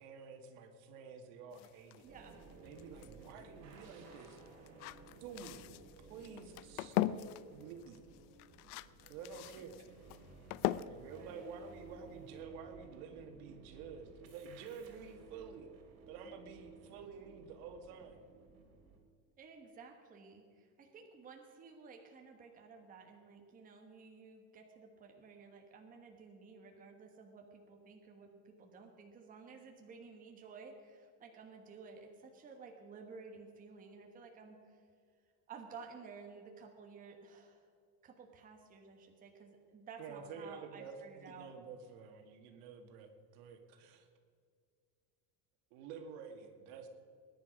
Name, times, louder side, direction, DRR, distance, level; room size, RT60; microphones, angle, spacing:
voice 1, 0.0-2.1 2.6-4.4 5.2-5.7 6.0-8.0 9.1-9.8 10.9-15.7 16.1-18.2 40.0-44.1 45.7-46.9, right 5 dB, 80° right, 5 dB, 2.0 m, -50 dB
sound 1, 1.5-12.4, left 15 dB, 80° left, 0.6 m, -42 dB
voice 2, 2.0-2.4 9.8-9.9 10.6-11.5 19.4-34.8 35.5-37.7 38.0-41.5, right 5 dB, 20° right, 2 dB, 1.2 m, -54 dB
sound 2, 2.1-19.0, right 4 dB, 35° right, 2.4 m, -57 dB
20.0 x 10.5 x 5.1 m, 2.2 s
cardioid pair, 180°, 44 cm